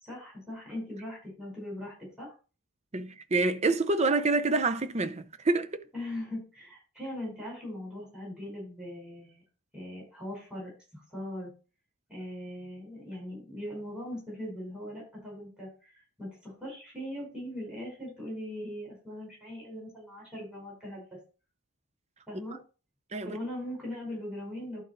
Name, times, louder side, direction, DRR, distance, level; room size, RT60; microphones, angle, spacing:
voice 1, 0.0-2.3 5.9-9.4 9.7-11.5 12.1-21.2 22.3-22.6 23.2-24.8, left 1 dB, 5° right, 5.3 m, -40 dB
voice 2, 2.9-5.8 23.1-23.4, right 3 dB, 30° right, 0.6 m, -27 dB
11.5 x 4.0 x 4.5 m
head